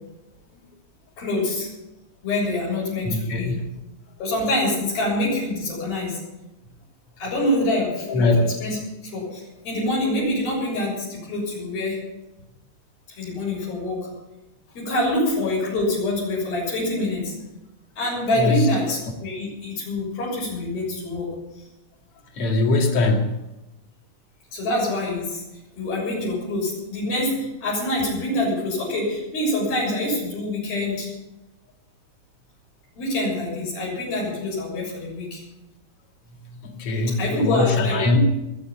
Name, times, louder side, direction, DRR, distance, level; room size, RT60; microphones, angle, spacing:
voice 1, 1.2-1.7 2.2-3.6 4.2-6.2 7.2-8.3 8.6-12.0 13.2-14.1 14.7-17.4 18.0-21.3 24.5-25.4 25.8-31.1 33.0-35.4 37.2-38.2, left 1 dB, 70° left, -5 dB, 8.8 m, -25 dB
voice 2, 3.0-3.5 8.1-8.3 18.4-18.7 22.4-23.4 36.6-38.2, left 3 dB, 45° left, 2 dB, 2.7 m, -21 dB
20.5 x 8.6 x 7.4 m, 0.96 s
omnidirectional pair, 4.4 m